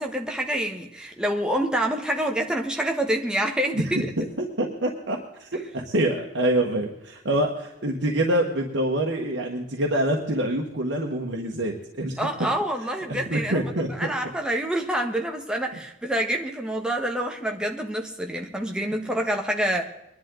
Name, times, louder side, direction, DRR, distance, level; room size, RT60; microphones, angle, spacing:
voice 1, 0.0-4.1 5.5-5.6 12.2-13.6 13.9-19.9, right 1 dB, 5° right, 2 dB, 1.4 m, -27 dB
voice 2, 4.4-12.1 13.1-13.9 19.0-19.1, right 1 dB, 80° right, 0 dB, 1.5 m, -26 dB
22.0 x 11.0 x 3.9 m, 0.88 s
head